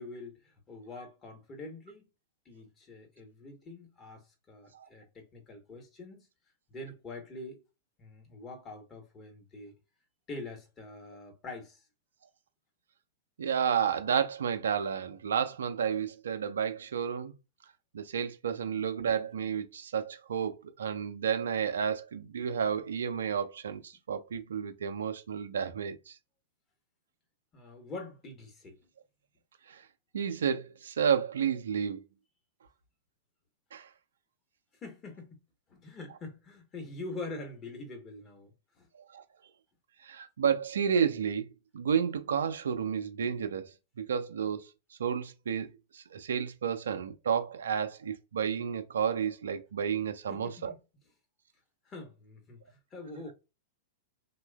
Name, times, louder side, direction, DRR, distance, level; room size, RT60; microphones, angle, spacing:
voice 1, 0.0-2.1 2.4-6.3 6.7-7.6 8.0-9.8 10.3-11.8 27.5-28.8 34.8-35.4 35.7-38.9 50.3-50.7 51.8-53.3, left 2 dB, 25° left, 0.9 m, -45 dB
voice 2, 13.4-17.3 17.9-26.2 29.7-29.8 30.1-32.0 33.7-33.9 39.1-39.2 40.0-41.5 41.7-44.7 45.0-50.7, right 7 dB, 70° right, 0.4 m, -31 dB
3.0 x 2.2 x 2.2 m
figure-of-eight pair, 100°, 0 cm